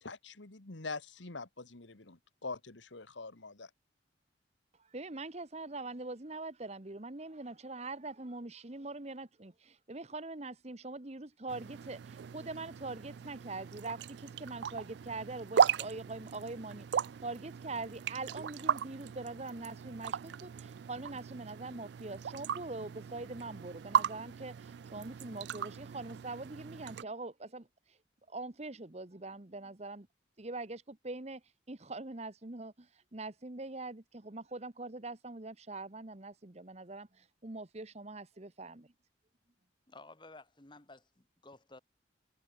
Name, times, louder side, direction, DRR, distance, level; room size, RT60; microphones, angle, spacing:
voice 1, 0.0-3.7, left 3 dB, 80° left, 1.8 m, -44 dB
voice 2, 4.8-28.0 28.3-30.1 30.4-31.4 31.7-38.9, right 2 dB, 35° right, 1.2 m, -43 dB
sound 1, 11.5-27.0, right 7 dB, 65° right, 0.3 m, -36 dB
voice 3, 39.9-41.8, left 2 dB, 25° left, 1.6 m, -54 dB
head